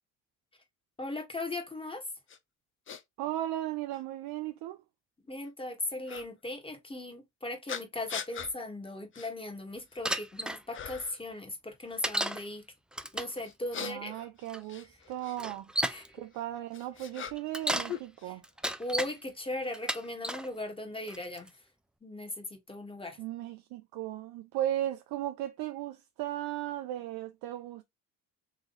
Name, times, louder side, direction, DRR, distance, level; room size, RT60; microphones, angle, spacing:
voice 1, 1.0-2.0 5.3-12.6 13.1-14.2 15.9-16.0 18.3-18.4 18.8-21.5 22.0-23.2, left 2 dB, 15° left, 1.7 m, -38 dB
sound 1, 2.3-2.4 2.9-3.0 3.9-4.0 6.1-6.3 7.7-8.5 9.1-9.3 9.8-10.3 10.7-11.2 13.4-15.4 16.3-17.6 17.9-18.8, left 8 dB, 35° left, 0.7 m, -41 dB
voice 2, 3.2-4.8 13.8-15.7 16.1-18.4 23.2-27.8, right 13 dB, 80° right, 0.6 m, -36 dB
Bicycle, 10.0-10.6 12.0-12.4 12.9-13.4 14.5-14.6 15.4-16.1 17.4-17.9 18.4-19.1 19.7-20.5 21.1-21.5, right 1 dB, ahead, 0.4 m, -32 dB
3.8 x 3.1 x 3.9 m
cardioid pair, 100°, 36 cm